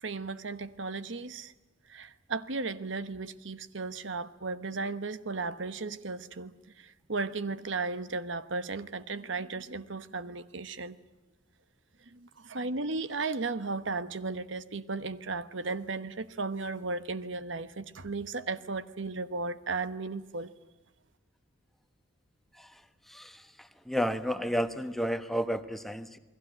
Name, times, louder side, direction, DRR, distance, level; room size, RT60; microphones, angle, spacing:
voice 1, 0.0-1.5 1.9-11.0 12.1-20.5, right 3 dB, 70° right, 12 dB, 1.1 m, -35 dB
voice 2, 23.9-26.2, equal, ahead, 9 dB, 1.2 m, -31 dB
28.5 x 21.0 x 9.1 m, 1.1 s
head